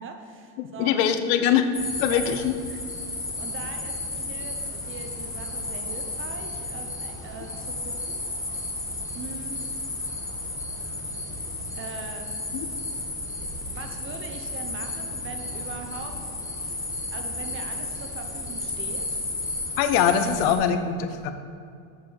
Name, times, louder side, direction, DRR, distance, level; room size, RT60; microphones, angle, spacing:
voice 1, 0.0-1.2 2.1-2.8 3.4-8.2 9.1-9.6 11.7-12.3 13.6-16.2 17.1-19.2, right 5 dB, 30° right, 6 dB, 0.8 m, -41 dB
voice 2, 0.6-1.7 2.0-2.5 12.5-12.7 19.8-21.3, left 8 dB, 60° left, 9 dB, 0.9 m, -22 dB
sound 1, 1.7-20.5, left 2 dB, 5° left, 1.3 m, -33 dB
7.4 x 6.0 x 6.4 m, 2.4 s
supercardioid pair, 130°, 45 cm